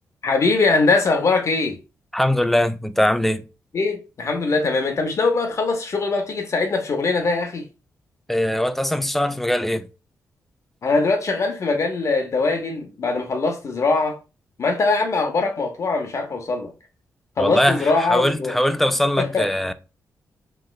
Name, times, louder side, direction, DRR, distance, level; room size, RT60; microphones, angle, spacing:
voice 1, 0.2-1.8 3.7-7.7 10.8-14.2 14.6-16.7 17.4-18.6 19.2-19.4, left 3 dB, 50° left, 0.6 m, -22 dB
voice 2, 2.1-3.4 8.3-9.8 17.4-19.7, left 1 dB, 5° left, 0.3 m, -21 dB
3.0 x 2.9 x 2.3 m
cardioid pair, 65°, 6 cm